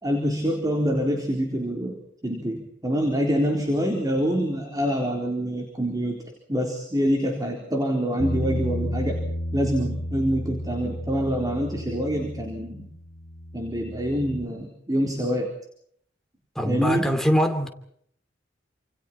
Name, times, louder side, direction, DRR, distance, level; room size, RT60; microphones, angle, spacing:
voice 1, 0.0-6.2 6.5-9.2 9.5-12.9 13.5-15.5 16.6-17.1, equal, 20° right, 4.0 m, -26 dB
Bass guitar, 8.2-14.4, equal, 65° left, 1.6 m, -32 dB
voice 2, 16.5-17.7, equal, ahead, 2.8 m, -23 dB
29.5 x 28.0 x 4.5 m
head